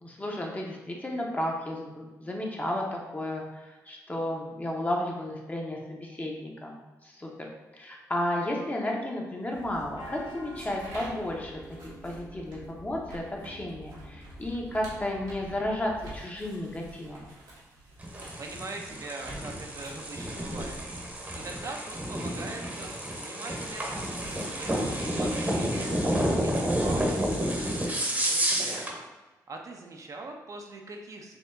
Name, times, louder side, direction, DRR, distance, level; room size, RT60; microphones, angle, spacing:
voice 1, 0.0-7.5 7.7-17.3, left 1 dB, 20° left, -1 dB, 0.9 m, -33 dB
sound 1, 9.5-16.2, equal, 80° left, 0.6 m, -46 dB
sound 2, 9.5-23.0 23.3-26.0, right 2 dB, 90° right, 1.1 m, -50 dB
sound 3, 18.0-29.0, equal, 25° right, 0.9 m, -30 dB
voice 2, 18.4-28.9 29.5-31.4, right 3 dB, 50° right, 2 dB, 0.6 m, -43 dB
4.3 x 2.8 x 2.6 m, 1.2 s
supercardioid pair, 60°, 7 cm